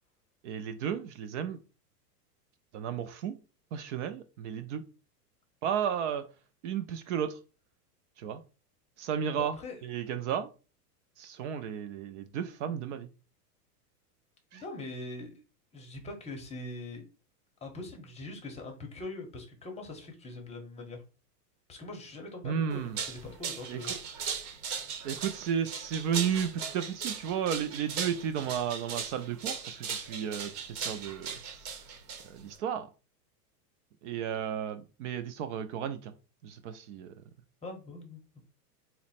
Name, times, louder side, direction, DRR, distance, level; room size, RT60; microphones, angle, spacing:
voice 1, 0.4-1.6 2.7-3.4 3.7-4.8 5.6-6.2 6.6-7.4 8.2-8.4 9.0-9.6 9.8-10.5 11.2-13.1 14.5-14.6 22.4-23.0 23.7-24.0 25.0-31.7 32.3-32.9 34.0-36.1 36.4-37.1, right 8 dB, 50° right, 0.5 m, -33 dB
voice 2, 9.4-9.8 14.5-15.4 15.7-17.0 17.6-21.0 21.7-24.3 24.7-25.1 37.6-38.2, left 2 dB, 15° left, 0.7 m, -42 dB
sound 1, 22.7-32.6, right 6 dB, 65° right, 1.4 m, -38 dB
4.1 x 2.1 x 4.1 m
hypercardioid pair, 125°, 48 cm